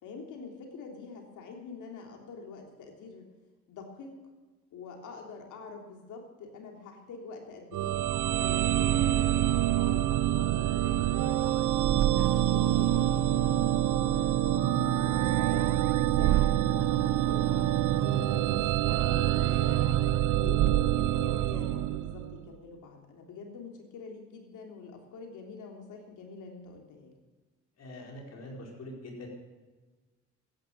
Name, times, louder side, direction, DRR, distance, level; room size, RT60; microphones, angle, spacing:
voice 1, 0.0-3.3 3.7-4.2 4.7-8.0 8.4-11.6 12.1-13.6 13.9-14.9 15.2-17.7 18.1-20.0 20.4-27.1, left 4 dB, 80° left, 2 dB, 3.2 m, -46 dB
sound 1, 7.7-22.4, right 13 dB, 80° right, 0.7 m, -26 dB
voice 2, 27.8-29.3, left 1 dB, 55° left, -1 dB, 4.9 m, -43 dB
14.0 x 10.5 x 7.5 m, 1.3 s
cardioid pair, 90°, 30 cm